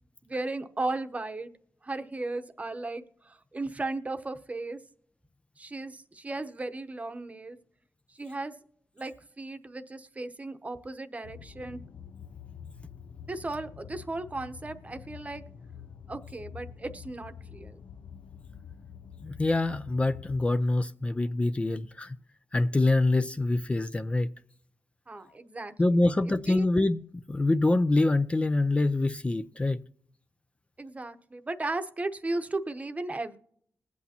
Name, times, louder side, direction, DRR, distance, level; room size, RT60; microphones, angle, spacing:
voice 1, 0.2-1.5 1.8-4.8 5.6-7.6 8.1-8.6 9.0-11.8 13.3-15.4 16.1-17.8 25.1-25.7 26.0-26.1 26.5-26.7 30.8-33.4, right 2 dB, 25° right, 9 dB, 0.9 m, -36 dB
sound 1, 11.2-20.4, left 7 dB, 80° left, 0.6 m, -47 dB
voice 2, 19.2-22.2 22.5-24.3 25.8-27.0 27.3-29.9, left 2 dB, 20° left, 10 dB, 0.5 m, -25 dB
21.5 x 8.3 x 2.8 m, 0.65 s
wide cardioid pair, 105°, 6 cm